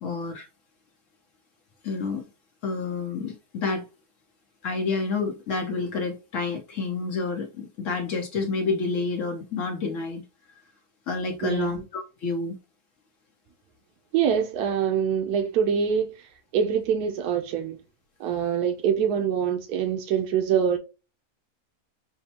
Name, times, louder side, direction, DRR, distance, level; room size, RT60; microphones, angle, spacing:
voice 1, 0.0-0.5 1.8-2.2 2.6-3.8 4.6-10.2 11.1-12.6, left 4 dB, 65° left, 0.9 m, -29 dB
voice 2, 11.4-11.8 14.1-16.3 16.5-17.8 18.2-20.8, right 8 dB, 90° right, 1.1 m, -24 dB
5.9 x 2.1 x 2.8 m
omnidirectional pair, 1.6 m